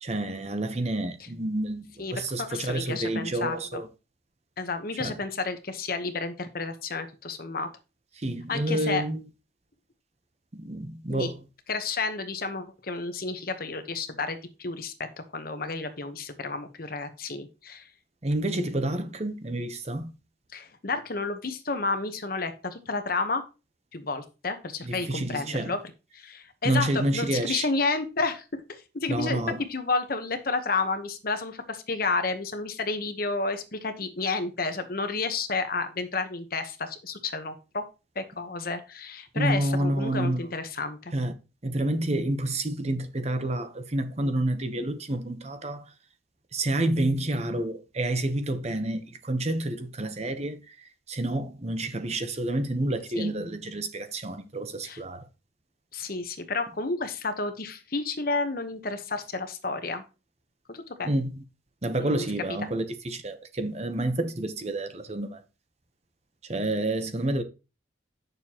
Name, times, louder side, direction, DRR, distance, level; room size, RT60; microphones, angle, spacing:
voice 1, 0.0-3.9 5.0-5.1 8.2-9.2 10.5-11.4 18.2-20.1 24.8-25.7 26.6-27.7 29.1-29.6 39.3-40.5 41.1-41.3 41.6-45.9 46.5-55.3 61.0-61.3 61.8-65.4 66.4-67.4, right 1 dB, 35° right, 0.9 m, -29 dB
voice 2, 2.0-3.8 4.6-7.7 8.5-9.0 11.1-11.3 11.7-17.9 20.5-23.4 23.9-25.8 26.1-29.4 29.7-37.8 38.1-41.1 53.2-53.3 54.8-55.0 55.9-60.0 60.7-61.1 62.0-62.3, left 3 dB, 50° left, 1.0 m, -31 dB
9.1 x 6.7 x 2.9 m
head